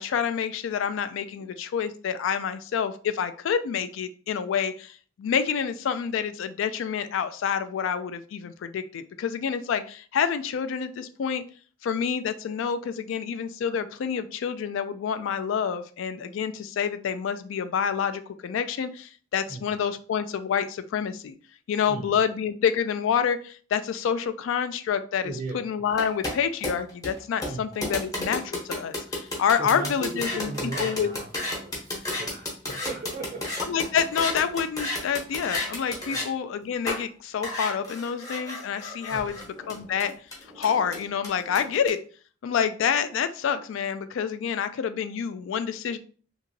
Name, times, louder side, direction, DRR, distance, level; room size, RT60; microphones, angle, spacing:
voice 1, 0.0-11.4 11.8-21.3 21.7-30.5 30.8-31.1 33.7-40.1 40.6-42.0 42.4-46.0, left 7 dB, 75° left, 11 dB, 0.3 m, -28 dB
voice 2, 21.9-22.2 25.2-25.6 27.4-27.7 29.6-33.6 36.1-36.2 39.1-39.4, right 2 dB, 40° right, 1 dB, 0.3 m, -37 dB
sound 1, 25.9-36.3 36.9-37.0 37.4-41.9, left 2 dB, 15° left, 0.7 m, -32 dB
2.9 x 2.6 x 2.6 m, 0.42 s
head